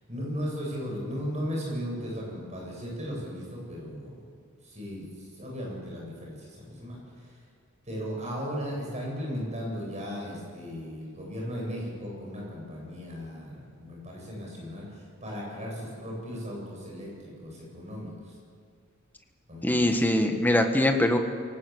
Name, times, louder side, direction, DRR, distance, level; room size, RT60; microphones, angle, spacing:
voice 1, 0.1-4.2 4.6-7.3 7.9-18.3 19.5-19.9, equal, 35° right, -2 dB, 7.8 m, -36 dB
voice 2, 19.6-21.2, left 1 dB, 10° left, 5 dB, 1.6 m, -22 dB
23.0 x 18.0 x 8.1 m, 2.2 s
head